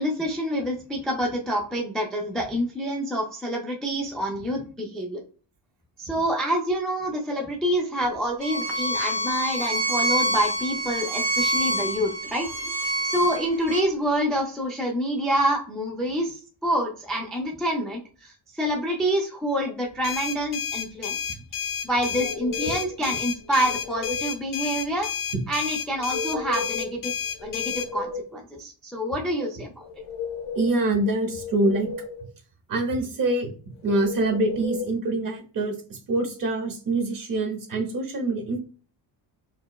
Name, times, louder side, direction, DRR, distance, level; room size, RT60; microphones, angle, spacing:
voice 1, 0.0-5.2 6.0-21.3 21.8-25.1 25.5-27.1 27.4-29.8, equal, ahead, -1 dB, 0.3 m, -27 dB
Bowed string instrument, 8.4-13.8, right 1 dB, 15° right, 1.5 m, -27 dB
Alarm Clock, 20.0-27.9, left 8 dB, 45° left, 0.6 m, -31 dB
sound 1, 22.1-23.0 23.5-24.3 25.9-26.9 27.3-28.4 29.8-30.8 31.3-32.3 33.9-34.9, left 4 dB, 90° left, 0.8 m, -34 dB
voice 2, 30.5-31.9 32.7-33.5 33.8-38.6, right 2 dB, 45° right, 3 dB, 0.9 m, -25 dB
4.3 x 2.0 x 2.2 m, 0.39 s
cardioid pair, 145°, 47 cm